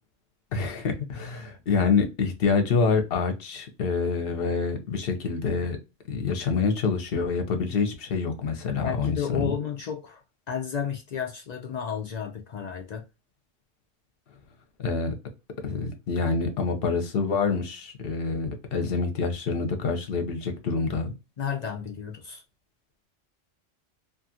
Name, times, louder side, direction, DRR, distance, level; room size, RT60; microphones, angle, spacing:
voice 1, 0.5-5.8 6.1-9.5 14.8-15.1 15.6-21.1, left 5 dB, 55° left, 0.8 m, -26 dB
voice 2, 8.8-10.2 10.5-13.0 21.4-22.4, left 7 dB, 85° left, 0.3 m, -32 dB
2.7 x 2.4 x 2.7 m
omnidirectional pair, 1.3 m